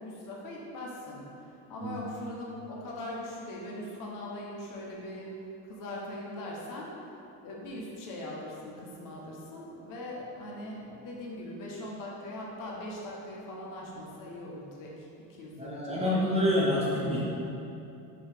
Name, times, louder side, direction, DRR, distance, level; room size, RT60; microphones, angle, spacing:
voice 1, 0.0-5.3 5.7-6.9 7.4-14.9 15.3-16.2, left 1 dB, 55° left, -3 dB, 0.9 m, -41 dB
voice 2, 15.6-17.2, left 1 dB, 15° right, -6 dB, 0.4 m, -27 dB
5.2 x 2.8 x 3.4 m, 2.8 s
cardioid pair, 150°, 39 cm